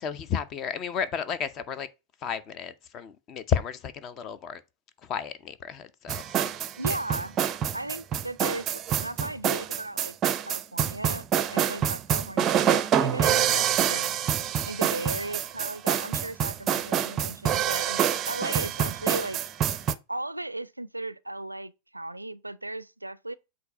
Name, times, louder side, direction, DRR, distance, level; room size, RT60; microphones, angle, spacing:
voice 1, 0.0-1.9 2.2-4.6 5.1-6.2, left 7 dB, 35° left, 0.6 m, -32 dB
sound 1, 6.1-19.9, right 9 dB, 30° right, 0.5 m, -26 dB
voice 2, 6.8-7.4 7.7-10.2 10.4-14.1 14.7-19.4 20.1-23.3, right 2 dB, 85° right, 0.3 m, -36 dB
7.9 x 2.7 x 5.4 m
figure-of-eight pair, 90°, 0 cm